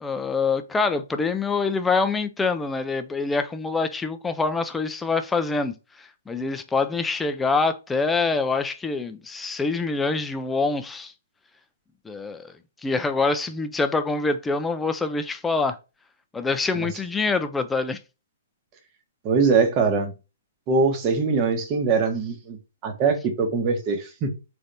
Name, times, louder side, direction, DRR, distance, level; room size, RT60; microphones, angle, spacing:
voice 1, 0.0-11.1 12.0-12.5 12.8-15.8 16.3-18.0, left 4 dB, 10° left, 0.4 m, -25 dB
voice 2, 19.2-20.1 20.7-22.6 22.8-24.3, right 4 dB, 30° right, 1.0 m, -22 dB
3.9 x 3.3 x 2.6 m
hypercardioid pair, 135°, 0 cm